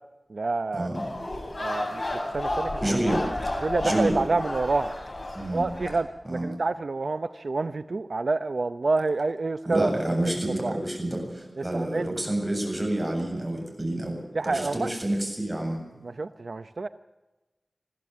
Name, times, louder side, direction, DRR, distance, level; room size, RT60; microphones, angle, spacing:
voice 1, 0.3-0.9 1.6-2.7 3.6-4.9 5.5-9.9 10.6-10.8 11.7-12.1 14.3-14.9 16.0-16.9, right 3 dB, 80° right, 11 dB, 0.6 m, -28 dB
sound 1, 0.9-6.0, left 1 dB, 45° left, 6.0 m, -32 dB
voice 2, 2.8-3.3 3.8-4.2 5.3-5.7 6.2-6.5 9.6-15.8, right 1 dB, 25° right, 2 dB, 7.7 m, -28 dB
21.5 x 15.0 x 8.4 m, 1.1 s
wide cardioid pair, 65°, 0 cm